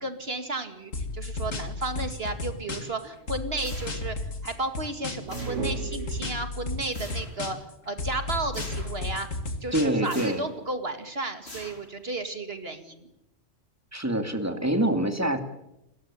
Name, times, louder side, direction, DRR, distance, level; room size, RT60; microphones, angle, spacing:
voice 1, 0.0-7.6 7.9-13.0, right 2 dB, 50° right, 8 dB, 2.4 m, -33 dB
sound 1, 0.9-3.0 3.3-5.4 5.6-7.7 8.0-10.3, left 3 dB, 85° left, 2.9 m, -33 dB
sound 2, 3.6-4.3 5.3-6.0 6.9-7.4 8.5-9.0 10.0-10.6 11.4-12.1, left 1 dB, 55° left, 5.0 m, -44 dB
sound 3, 5.2-6.7, right 5 dB, 70° right, 2.1 m, -35 dB
voice 2, 9.7-10.4 13.9-15.4, right 1 dB, 10° right, 7 dB, 2.5 m, -25 dB
28.0 x 14.5 x 8.8 m, 0.87 s
omnidirectional pair, 1.3 m